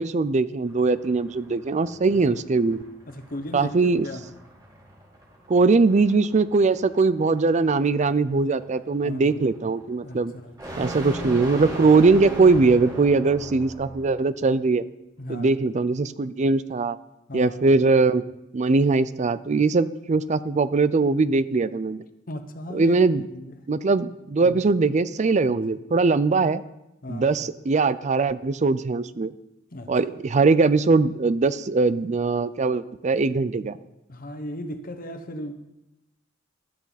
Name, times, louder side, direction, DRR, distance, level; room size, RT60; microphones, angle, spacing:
voice 1, 0.0-2.8 3.5-4.1 5.5-10.3 10.8-14.8 15.3-17.0 17.3-18.2 18.5-22.0 22.7-23.2 23.7-26.6 27.1-29.3 29.9-33.8, right 3 dB, 35° right, 0.4 m, -21 dB
sound 1, 0.6-14.2, right 1 dB, 20° right, 4.6 m, -38 dB
voice 2, 3.1-4.3 9.0-9.4 10.0-10.9 15.2-15.5 17.3-17.7 22.3-23.6 24.0-24.1 24.4-24.6 27.0-27.4 29.7-30.0 34.1-35.5, left 1 dB, 45° left, 1.2 m, -36 dB
14.0 x 13.0 x 4.1 m
head